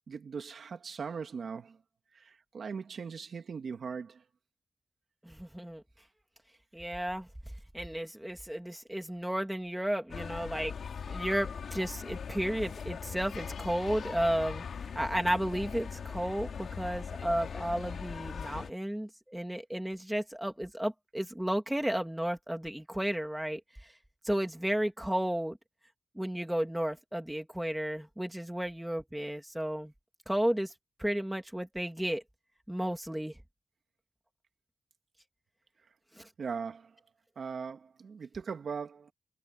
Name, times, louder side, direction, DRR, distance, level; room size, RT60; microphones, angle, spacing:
voice 1, 0.1-1.8 2.1-4.2 36.4-37.0 37.4-39.1, right 5 dB, 65° right, 2.5 m, -39 dB
voice 2, 5.2-5.8 6.7-7.3 7.7-10.7 11.1-14.6 14.9-23.6 24.2-25.6 26.1-29.9 30.3-30.7 31.0-32.2 32.7-33.3 36.1-36.3, right 1 dB, 5° right, 2.9 m, -33 dB
sound 1, 10.1-18.7, left 6 dB, 80° left, 4.3 m, -40 dB
wide cardioid pair, 160°, 0 cm